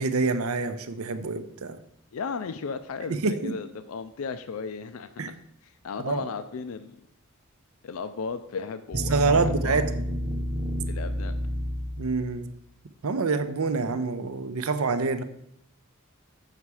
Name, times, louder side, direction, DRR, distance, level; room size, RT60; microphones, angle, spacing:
voice 1, 0.0-1.8 3.1-3.5 5.2-5.3 6.0-6.2 9.1-9.8 12.0-12.5 13.0-15.2, right 4 dB, 80° right, 10 dB, 0.6 m, -26 dB
voice 2, 2.1-5.3 5.6-7.0 7.8-9.8 10.9-11.3, left 5 dB, 75° left, 10 dB, 0.4 m, -35 dB
sound 1, 8.9-12.4, equal, 20° right, 0.9 m, -30 dB
7.0 x 5.7 x 4.8 m, 0.73 s
head